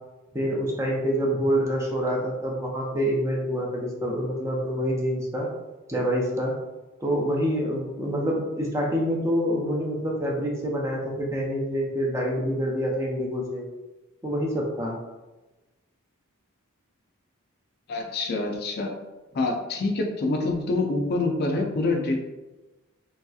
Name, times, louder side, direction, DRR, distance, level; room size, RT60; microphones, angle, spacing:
voice 1, 0.3-5.5 5.9-6.5 7.0-13.6 14.2-15.0, equal, 15° right, -2 dB, 0.4 m, -26 dB
voice 2, 17.9-18.9 19.3-22.2, left 2 dB, 45° left, 1 dB, 0.4 m, -26 dB
3.1 x 2.7 x 2.3 m, 1.1 s
head